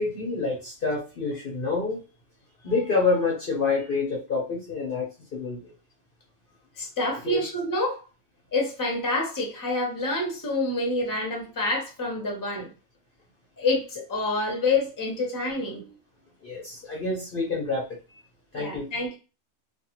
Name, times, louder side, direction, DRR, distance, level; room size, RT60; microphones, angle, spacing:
voice 1, 0.0-2.0 2.6-5.7 7.2-7.4 16.4-17.8 18.5-18.9, left 4 dB, 50° left, -3 dB, 0.8 m, -27 dB
voice 2, 6.8-8.0 8.5-12.7 13.6-15.8 18.5-19.2, left 2 dB, 20° left, -1 dB, 0.7 m, -27 dB
2.5 x 2.4 x 2.8 m, 0.33 s
omnidirectional pair, 1.4 m